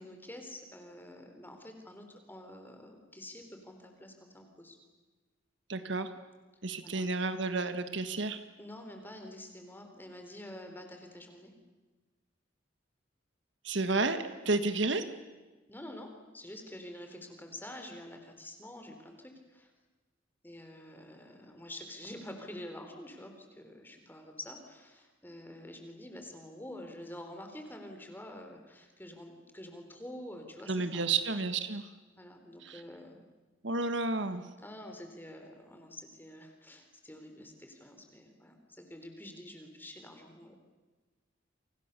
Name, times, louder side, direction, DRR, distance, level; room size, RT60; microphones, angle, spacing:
voice 1, 0.0-4.8 6.8-7.1 8.6-11.5 14.4-14.6 15.7-19.7 20.4-31.1 32.2-33.2 34.6-40.6, left 1 dB, 10° left, 4 dB, 3.9 m, -47 dB
voice 2, 5.7-6.1 6.6-8.4 13.6-15.0 30.7-31.9 32.6-32.8 33.6-34.4, right 3 dB, 65° right, 9 dB, 1.6 m, -31 dB
30.0 x 25.5 x 6.8 m, 1.2 s
head